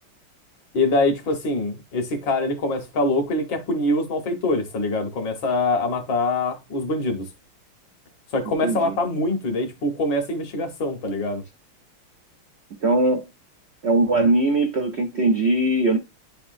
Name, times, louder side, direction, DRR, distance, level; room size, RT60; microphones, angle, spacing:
voice 1, 0.7-7.3 8.3-11.4, left 2 dB, 60° left, 1.9 m, -24 dB
voice 2, 8.6-8.9 12.8-13.2 13.8-16.0, right 2 dB, 85° right, 0.5 m, -20 dB
10.5 x 4.2 x 2.6 m
omnidirectional pair, 2.4 m